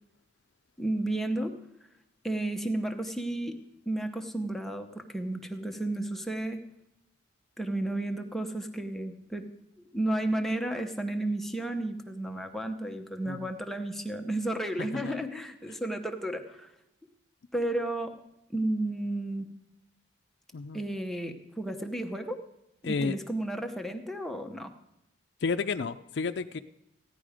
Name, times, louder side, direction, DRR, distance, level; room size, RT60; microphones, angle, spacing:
voice 1, 0.8-1.6 2.2-3.6 3.9-6.6 7.6-9.5 9.9-16.7 17.5-18.2 18.5-19.5 20.7-22.4 22.8-24.7, right 1 dB, ahead, 4 dB, 0.8 m, -32 dB
voice 2, 14.9-15.2 20.5-20.8 22.8-23.2 25.4-26.6, left 4 dB, 60° left, 8 dB, 0.4 m, -31 dB
16.0 x 10.0 x 5.0 m, 0.88 s
head